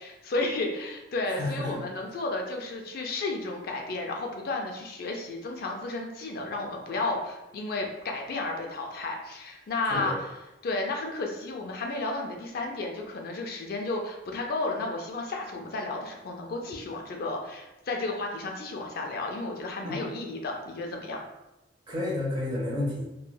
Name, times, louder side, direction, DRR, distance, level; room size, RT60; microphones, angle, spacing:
voice 1, 0.0-10.3 10.6-21.2, left 2 dB, 55° left, 2 dB, 0.4 m, -33 dB
voice 2, 1.4-1.8 9.9-10.2 19.8-20.0 21.9-23.1, left 1 dB, 25° right, -4 dB, 0.7 m, -30 dB
3.1 x 2.2 x 2.2 m, 0.97 s
head